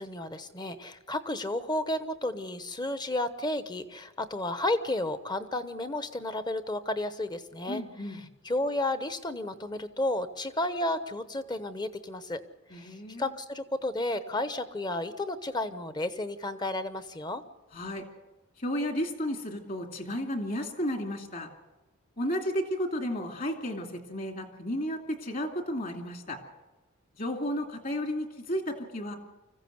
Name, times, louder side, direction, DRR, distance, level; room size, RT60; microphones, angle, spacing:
voice 1, 0.0-12.4 12.7-17.4, left 1 dB, 20° left, 11 dB, 0.9 m, -32 dB
voice 2, 7.7-8.2 12.7-13.3 17.7-18.0 18.6-21.5 22.2-26.4 27.2-29.2, equal, 40° left, 4 dB, 2.6 m, -33 dB
25.0 x 15.0 x 8.0 m, 1.1 s
head